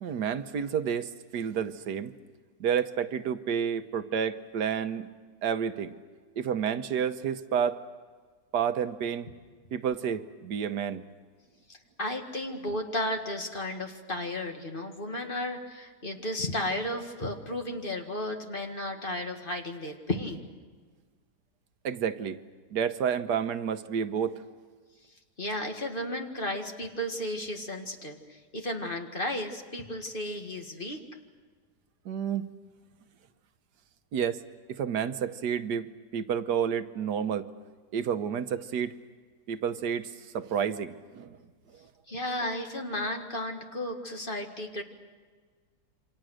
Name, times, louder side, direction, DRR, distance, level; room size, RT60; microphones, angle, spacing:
voice 1, 0.0-2.1 2.6-5.1 5.4-5.9 6.4-7.8 8.5-9.3 9.7-11.1 21.8-22.4 22.7-24.4 32.0-32.4 34.1-34.4 34.7-37.5 37.9-39.0 39.5-41.4, right 8 dB, 85° right, 10 dB, 1.5 m, -30 dB
voice 2, 11.7-20.5 25.4-31.0 42.1-44.8, left 1 dB, 30° left, 3 dB, 2.1 m, -34 dB
28.5 x 25.0 x 6.4 m, 1.5 s
omnidirectional pair, 1.7 m